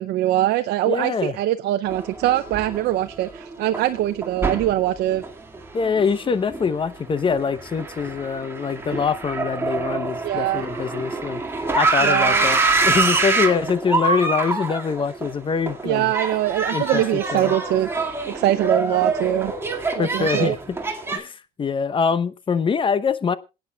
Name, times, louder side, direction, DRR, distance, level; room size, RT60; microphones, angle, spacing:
voice 1, 0.0-5.2 10.2-10.7 12.0-12.5 15.8-17.9 18.3-19.5 19.9-20.6, right 14 dB, 75° right, 8 dB, 0.6 m, -22 dB
voice 2, 0.9-1.4 5.7-16.1 16.7-17.5 20.0-20.8 21.1-23.4, left 5 dB, 30° left, 15 dB, 0.8 m, -24 dB
sound 1, 1.9-21.2, right 3 dB, 15° right, 2.1 m, -25 dB
27.0 x 9.1 x 2.3 m, 0.27 s
cardioid pair, 110°, 17 cm